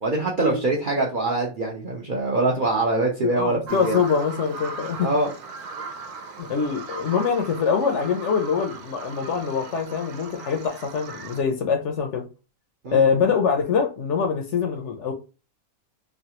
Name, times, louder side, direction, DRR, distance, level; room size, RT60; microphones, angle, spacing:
voice 1, 0.0-4.0 5.0-5.3 12.8-13.0, right 2 dB, 55° right, 0.6 m, -24 dB
voice 2, 3.2-5.1 6.4-12.3 12.9-15.1, left 6 dB, 65° left, 0.8 m, -24 dB
Bird vocalization bird call bird song, 3.7-11.4, right 3 dB, 90° right, 1.1 m, -38 dB
3.1 x 2.3 x 2.8 m
omnidirectional pair, 1.5 m